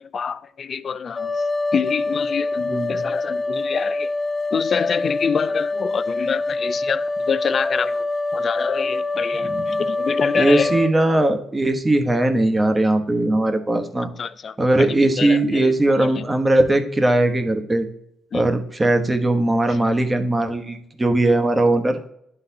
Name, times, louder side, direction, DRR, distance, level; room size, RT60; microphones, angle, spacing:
voice 1, 0.0-1.4 1.7-4.1 4.5-8.1 8.3-10.8 14.2-16.2 18.3-18.4, left 6 dB, 50° left, 0.3 m, -26 dB
sound 1, 1.2-10.9, left 2 dB, 15° left, 0.8 m, -25 dB
voice 2, 2.7-3.0 9.3-9.8 10.3-14.1 14.6-17.9 18.3-22.0, right 1 dB, 20° right, 0.9 m, -19 dB
11.5 x 3.9 x 2.7 m
cardioid pair, 90°, 0 cm